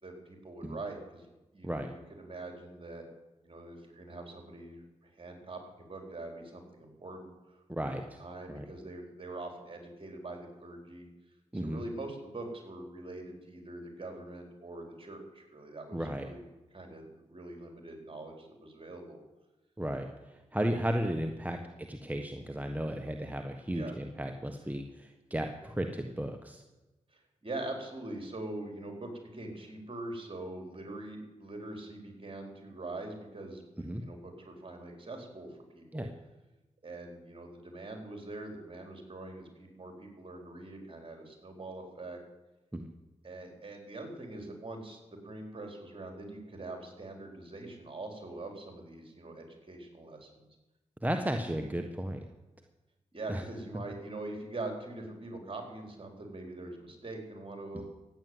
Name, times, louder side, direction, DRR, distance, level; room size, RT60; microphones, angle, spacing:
voice 1, 0.0-1.3 1.5-3.0 3.4-11.1 11.5-16.4 16.7-19.2 23.7-23.9 27.1-36.1 36.8-42.2 43.2-50.5 53.1-57.8, right 2 dB, 45° right, 3 dB, 4.4 m, -43 dB
voice 2, 7.7-8.0 8.5-8.6 11.5-11.8 15.9-16.3 19.8-26.6 33.8-34.0 35.9-36.1 42.7-42.9 51.0-52.2 53.3-53.4 57.7-57.8, equal, 10° right, 5 dB, 1.4 m, -34 dB
14.5 x 9.4 x 8.0 m, 1.1 s
supercardioid pair, 40°, 13 cm